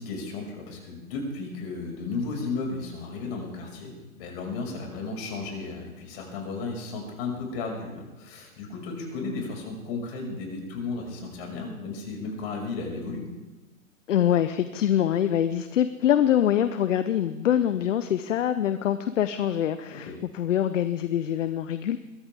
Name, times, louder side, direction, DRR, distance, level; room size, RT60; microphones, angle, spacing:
voice 1, 0.0-13.2 19.9-20.1, left 3 dB, 45° left, 1 dB, 6.0 m, -34 dB
voice 2, 14.1-22.0, left 10 dB, 60° left, 12 dB, 0.9 m, -24 dB
22.5 x 14.5 x 3.6 m, 1.2 s
figure-of-eight pair, 120°, 42 cm